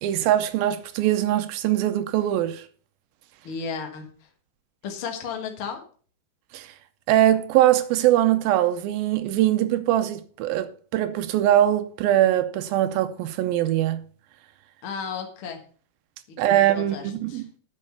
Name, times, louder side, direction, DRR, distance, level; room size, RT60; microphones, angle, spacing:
voice 1, 0.0-2.7 6.5-6.7 7.1-14.0 16.4-17.4, right 12 dB, 85° right, 2.4 m, -22 dB
voice 2, 3.4-4.3 4.8-5.8 14.8-15.6 16.3-17.5, left 6 dB, 55° left, 1.6 m, -34 dB
8.6 x 6.5 x 6.5 m
omnidirectional pair, 4.3 m